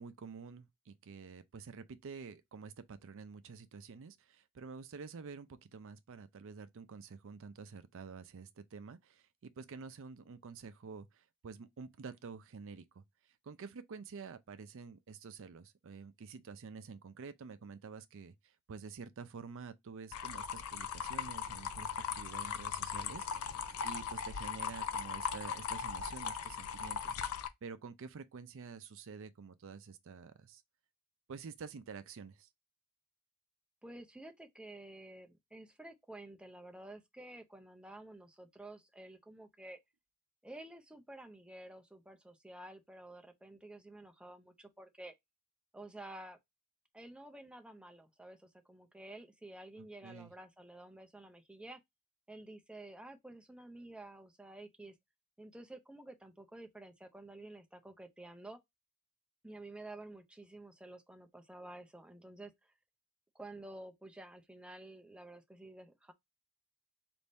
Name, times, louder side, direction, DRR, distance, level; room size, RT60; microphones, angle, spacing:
voice 1, 0.0-13.0 13.4-18.3 18.7-23.5 23.8-27.2 27.6-30.6 31.3-32.5 49.8-50.3, right 5 dB, 60° right, 0.5 m, -49 dB
sound 1, 20.1-27.5, left 7 dB, 75° left, 0.5 m, -39 dB
voice 2, 33.8-39.8 40.4-45.1 45.7-46.4 46.9-51.8 52.3-54.9 55.4-58.6 59.4-62.5 63.3-66.1, right 1 dB, 5° right, 0.5 m, -51 dB
3.4 x 2.6 x 4.1 m
head